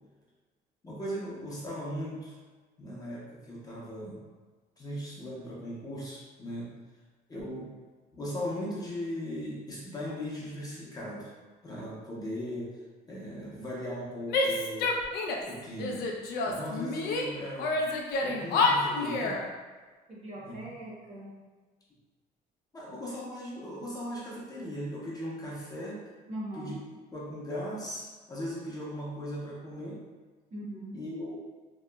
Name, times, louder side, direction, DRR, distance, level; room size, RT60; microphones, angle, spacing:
voice 1, 0.8-2.4 2.8-4.2 4.8-6.7 7.3-7.7 8.1-11.3 11.6-12.8 13.1-14.9 15.5-16.1 16.5-17.8 18.2-19.4 20.4-20.7 22.7-26.0 26.5-26.8 27.1-30.0 30.9-31.4, equal, 20° left, -6 dB, 0.7 m, -38 dB
Female speech woman speaking / Yell, 14.3-15.5 15.8-17.3 17.6-19.4, left 3 dB, 70° left, 0.4 m, -28 dB
voice 2, 20.1-21.3 26.3-26.7 30.5-31.0, right 1 dB, 40° right, -5 dB, 0.7 m, -40 dB
2.8 x 2.0 x 2.2 m, 1.3 s
cardioid pair, 110°, 17 cm